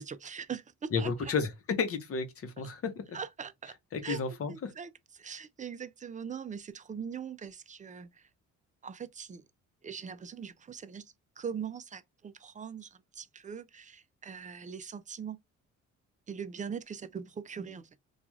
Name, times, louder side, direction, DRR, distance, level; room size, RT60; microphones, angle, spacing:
voice 1, 0.0-1.3 3.1-3.8 4.0-8.3 8.8-9.4 9.8-15.4 16.3-18.0, right 7 dB, 25° right, 0.4 m, -41 dB
voice 2, 0.9-3.2 3.9-4.7, left 5 dB, 50° left, 0.8 m, -32 dB
3.0 x 2.3 x 2.3 m
cardioid pair, 90°, 30 cm